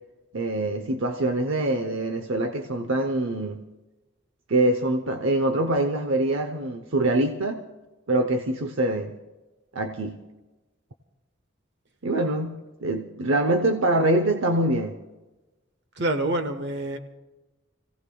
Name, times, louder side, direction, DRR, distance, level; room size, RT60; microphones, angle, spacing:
voice 1, 0.3-3.6 4.5-7.6 8.1-9.1 9.7-10.2 12.0-14.9, right 1 dB, 75° right, 6 dB, 0.8 m, -24 dB
voice 2, 16.0-17.0, right 1 dB, 60° right, 8 dB, 1.2 m, -26 dB
29.0 x 16.5 x 2.3 m, 1.1 s
head